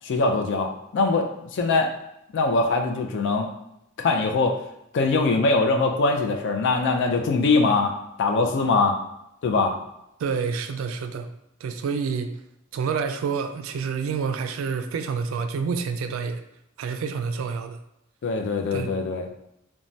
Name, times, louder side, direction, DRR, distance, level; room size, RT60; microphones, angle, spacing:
voice 1, 0.0-1.9 2.3-3.5 4.0-4.6 4.9-7.9 8.2-8.9 9.4-9.8 18.2-19.3, left 3 dB, 60° left, 4 dB, 0.4 m, -22 dB
voice 2, 10.2-11.3 11.6-12.3 12.7-16.4 16.8-17.8 18.7-18.9, right 5 dB, 75° right, 9 dB, 0.3 m, -28 dB
3.1 x 2.2 x 2.6 m, 0.81 s
head